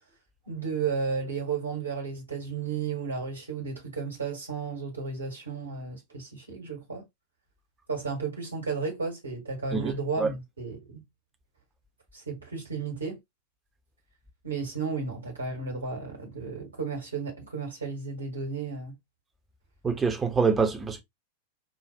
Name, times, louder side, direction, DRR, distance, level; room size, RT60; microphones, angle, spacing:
voice 1, 0.5-7.0 7.9-11.0 12.1-13.2 14.4-18.9, right 5 dB, 75° right, 1.5 m, -33 dB
voice 2, 9.7-10.3 19.8-21.0, right 5 dB, 15° right, 1.0 m, -26 dB
5.0 x 2.5 x 2.8 m
figure-of-eight pair, 90°, 0 cm